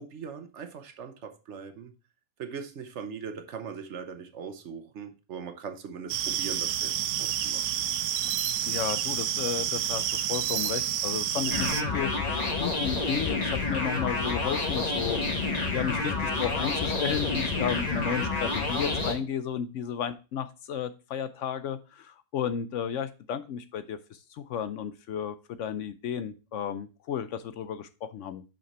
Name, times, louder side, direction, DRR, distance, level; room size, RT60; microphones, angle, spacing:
voice 1, 0.0-1.9 2.4-7.8, right 6 dB, 60° right, 1.0 m, -40 dB
sound 1, 6.1-11.8, right 10 dB, 85° right, 1.0 m, -29 dB
voice 2, 8.7-28.4, left 8 dB, 65° left, 0.8 m, -33 dB
sound 2, 11.5-19.1, left 3 dB, 30° left, 1.3 m, -29 dB
5.9 x 5.5 x 4.2 m
omnidirectional pair, 1.5 m